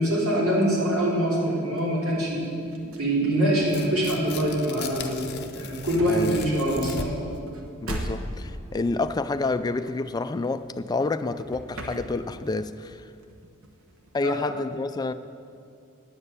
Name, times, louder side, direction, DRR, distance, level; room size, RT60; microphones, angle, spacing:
voice 1, 0.0-2.5 3.0-5.2 5.5-7.1 14.2-14.3, right 1 dB, 85° right, 3.4 m, -24 dB
sound 1, 1.8-11.1 11.4-12.6 12.9-14.4, right 1 dB, 70° right, 1.2 m, -40 dB
Tearing, 3.6-7.4, left 5 dB, 50° left, 0.7 m, -38 dB
voice 2, 6.1-6.4 7.8-13.1 14.1-15.1, left 3 dB, 20° left, 0.3 m, -28 dB
9.7 x 7.6 x 8.2 m
head